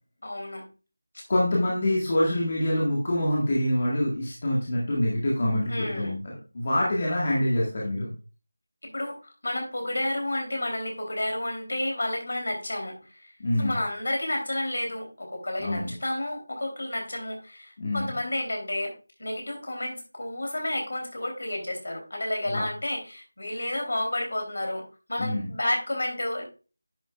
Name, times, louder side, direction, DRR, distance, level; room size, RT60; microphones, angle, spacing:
voice 1, 0.2-0.7 1.1-1.2 5.7-6.1 8.8-13.3 13.6-18.9 19.2-24.8 25.1-26.4, left 1 dB, 55° left, 2 dB, 3.3 m, -31 dB
voice 2, 1.3-6.2 6.5-8.1 13.4-13.7 15.6-15.9 17.8-18.1 22.5-22.6 25.2-25.5, left 1 dB, 25° left, -4 dB, 1.7 m, -25 dB
10.5 x 7.0 x 2.4 m, 0.34 s
figure-of-eight pair, 180°, 0 cm